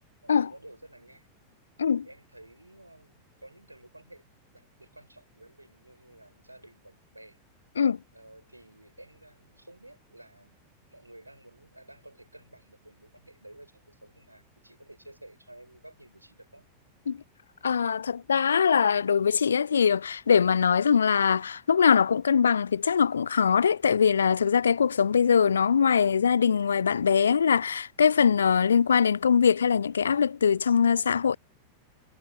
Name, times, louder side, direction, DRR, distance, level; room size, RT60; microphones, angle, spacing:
voice 1, 0.2-1.3 1.8-4.3 4.5-7.4 8.1-10.5 10.9-16.7 20.7-20.8 28.6-28.8, right 1 dB, 85° right, 6.1 m, -52 dB
voice 2, 17.6-31.4, left 6 dB, 70° left, 0.3 m, -22 dB
figure-of-eight pair, 90°, 0 cm